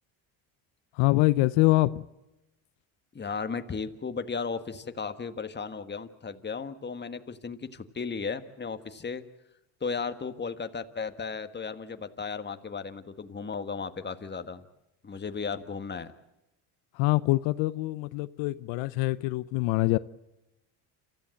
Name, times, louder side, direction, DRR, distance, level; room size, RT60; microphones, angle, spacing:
voice 1, 0.9-2.0 16.9-20.0, left 20 dB, 80° left, 0.7 m, -24 dB
voice 2, 3.1-9.2 9.8-14.6 15.0-16.1, left 5 dB, 25° left, 1.5 m, -35 dB
28.0 x 14.5 x 7.7 m
supercardioid pair, 95°, 45 cm